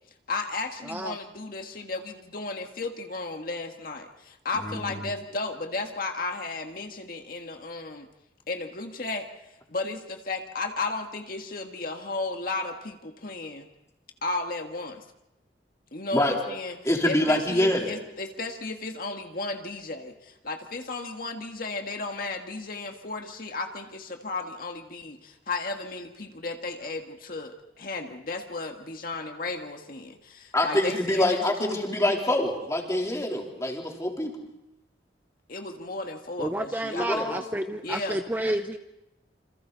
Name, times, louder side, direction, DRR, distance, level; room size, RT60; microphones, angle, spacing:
voice 1, 0.3-8.1 8.5-9.3 9.7-13.7 14.2-15.0 15.9-16.8 17.0-32.0 35.5-37.4 37.8-38.2, left 3 dB, 55° left, 4 dB, 1.7 m, -34 dB
voice 2, 0.8-1.2 36.4-38.8, right 1 dB, 10° right, 7 dB, 0.7 m, -30 dB
voice 3, 4.5-5.0 16.1-16.3 16.8-17.9 30.5-34.4 36.9-37.4, left 1 dB, 20° left, 0 dB, 3.5 m, -25 dB
28.0 x 27.0 x 4.0 m, 0.90 s
head